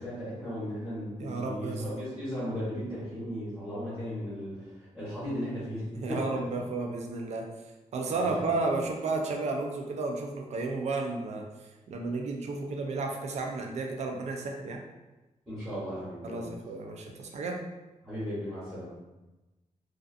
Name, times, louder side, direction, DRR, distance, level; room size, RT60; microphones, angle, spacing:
voice 1, 0.0-6.6 8.2-8.6 15.5-16.6 18.0-19.0, equal, ahead, -13 dB, 1.0 m, -36 dB
voice 2, 1.2-2.2 6.0-7.5 7.9-11.4 11.9-14.8 16.2-17.6, right 3 dB, 55° right, 2 dB, 0.4 m, -32 dB
2.5 x 2.3 x 2.4 m, 1.1 s
wide cardioid pair, 125°, 14 cm